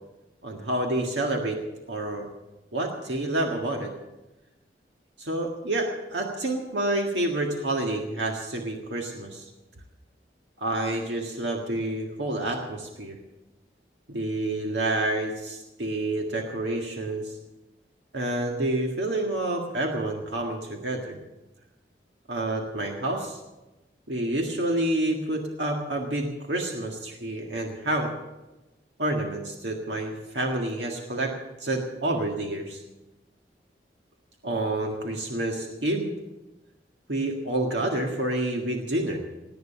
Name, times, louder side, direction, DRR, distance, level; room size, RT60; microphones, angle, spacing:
voice 1, 0.4-1.6 1.9-2.3 2.7-3.9 5.2-9.4 10.6-13.2 14.1-17.3 18.1-21.2 22.3-23.4 24.1-28.1 29.0-31.4 31.6-32.8 34.4-36.1 37.1-39.2, right 1 dB, 80° right, 1 dB, 1.8 m, -28 dB
18.5 x 9.5 x 6.8 m, 1.0 s
head